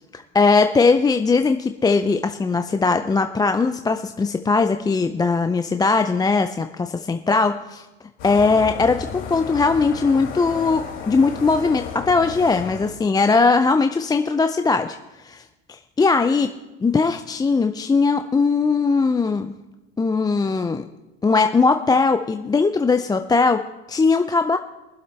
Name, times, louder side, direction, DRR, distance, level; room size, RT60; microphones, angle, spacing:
voice 1, 0.1-7.9 8.2-15.0 15.2-15.4 16.0-16.5 16.8-19.5 20.0-20.8 21.2-23.6 23.9-24.6, left 4 dB, 10° left, 7 dB, 0.5 m, -19 dB
sound 1, 8.2-13.0, left 5 dB, 65° left, 2.9 m, -33 dB
23.0 x 8.0 x 3.2 m, 1.1 s
hypercardioid pair, 75°, 33 cm